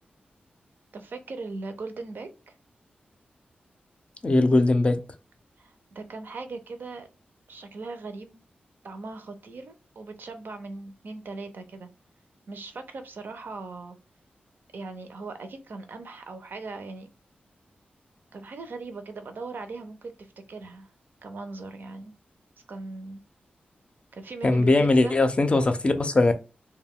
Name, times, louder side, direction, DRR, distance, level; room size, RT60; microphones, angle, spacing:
voice 1, 0.9-2.5 5.6-7.1 7.5-8.4 8.8-11.9 12.5-14.0 14.7-17.1 18.3-20.9 21.2-22.1 22.7-23.2 24.1-25.2, right 3 dB, 70° right, 0.5 m, -39 dB
voice 2, 4.2-5.0 24.4-26.4, left 2 dB, 35° left, 0.4 m, -20 dB
2.2 x 2.1 x 3.5 m
cardioid pair, 75°, 4 cm